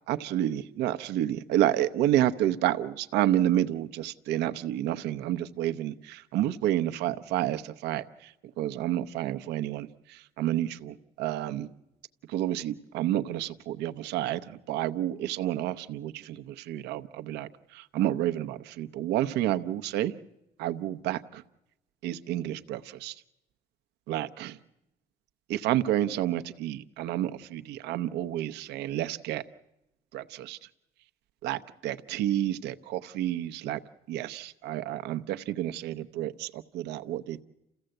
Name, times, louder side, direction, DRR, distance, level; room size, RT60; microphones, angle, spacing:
voice 1, 0.1-11.7 12.3-20.1 20.6-21.4 22.0-23.2 24.1-24.6 25.5-29.4 30.1-30.7 31.4-33.8 34.1-37.4, right 13 dB, 85° right, 10 dB, 0.8 m, -30 dB
28.5 x 15.5 x 7.8 m, 0.90 s
cardioid pair, 110°, 17 cm